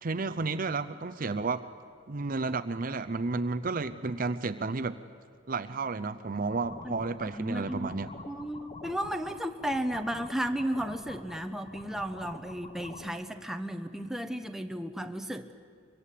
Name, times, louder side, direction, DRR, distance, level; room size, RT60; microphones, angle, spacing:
voice 1, 0.0-1.6 2.1-5.0 5.5-8.1, right 3 dB, 40° right, 10 dB, 0.6 m, -32 dB
sound 1, 6.4-13.1, left 2 dB, 30° left, 1.3 m, -47 dB
voice 2, 6.8-15.6, equal, ahead, 6 dB, 0.9 m, -34 dB
24.0 x 23.0 x 8.4 m, 2.1 s
head